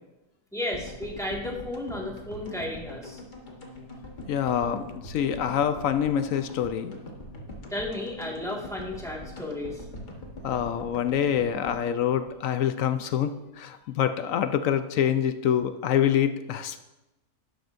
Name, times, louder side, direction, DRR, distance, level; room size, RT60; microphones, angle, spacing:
voice 1, 0.5-3.2 7.7-9.8, left 1 dB, ahead, -3 dB, 1.7 m, -33 dB
sound 1, 0.7-13.0 13.2-13.3 13.5-13.6, left 1 dB, 30° left, 1.4 m, -42 dB
voice 2, 4.3-7.0 10.4-16.8, left 9 dB, 70° left, 10 dB, 0.9 m, -26 dB
11.5 x 11.5 x 2.6 m, 0.99 s
omnidirectional pair, 1.7 m